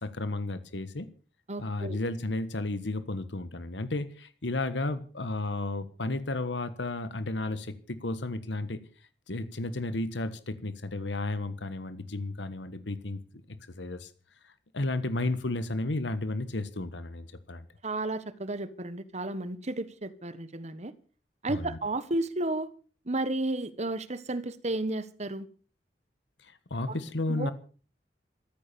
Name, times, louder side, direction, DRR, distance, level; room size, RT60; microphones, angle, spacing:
voice 1, 0.0-1.1 1.6-8.8 9.3-13.2 13.5-14.1 14.4-17.7 21.5-21.8 26.4-27.5, left 2 dB, 85° left, 12 dB, 1.4 m, -33 dB
voice 2, 1.5-2.0 17.8-20.9 21.4-22.7 23.0-25.5 26.9-27.0 27.3-27.5, right 2 dB, 40° right, 15 dB, 1.5 m, -32 dB
14.0 x 13.5 x 7.0 m, 0.40 s
head